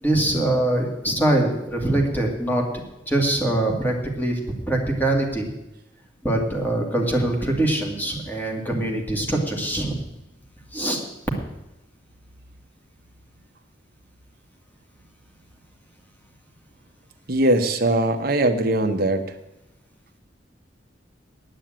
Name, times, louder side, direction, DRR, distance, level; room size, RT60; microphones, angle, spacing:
voice 1, 0.0-4.4 4.7-5.5 6.2-10.0 10.7-11.0, right 1 dB, 10° left, 0 dB, 2.2 m, -23 dB
voice 2, 17.3-19.2, right 1 dB, 50° right, 7 dB, 1.1 m, -20 dB
9.0 x 8.8 x 8.9 m, 0.94 s
head